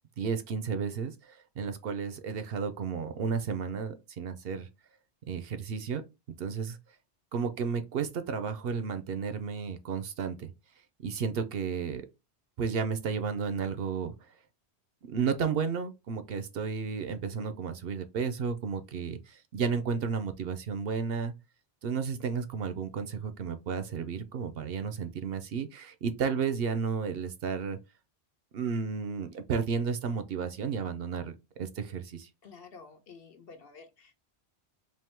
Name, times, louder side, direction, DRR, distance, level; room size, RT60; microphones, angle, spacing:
voice 1, 0.2-4.7 5.3-6.0 6.4-6.8 7.3-10.5 11.0-12.1 12.6-14.1 15.1-21.3 21.8-27.8 28.5-32.3, right 6 dB, 65° right, 0.8 m, -32 dB
voice 2, 32.4-34.1, left 5 dB, 60° left, 1.1 m, -51 dB
3.5 x 2.7 x 4.3 m
omnidirectional pair, 1.1 m